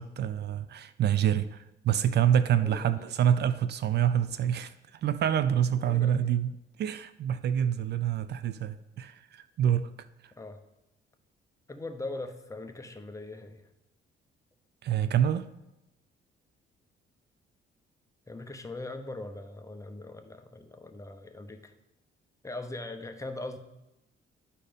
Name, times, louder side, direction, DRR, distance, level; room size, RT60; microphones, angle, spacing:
voice 1, 0.0-6.5 6.8-9.9 14.8-15.5, right 9 dB, 55° right, 13 dB, 0.4 m, -27 dB
voice 2, 2.5-3.1 5.7-6.4 10.4-10.6 11.7-13.7 18.3-21.7 22.4-23.6, left 2 dB, 15° left, 7 dB, 0.8 m, -41 dB
11.0 x 4.2 x 5.1 m, 0.95 s
cardioid pair, 90°, 20 cm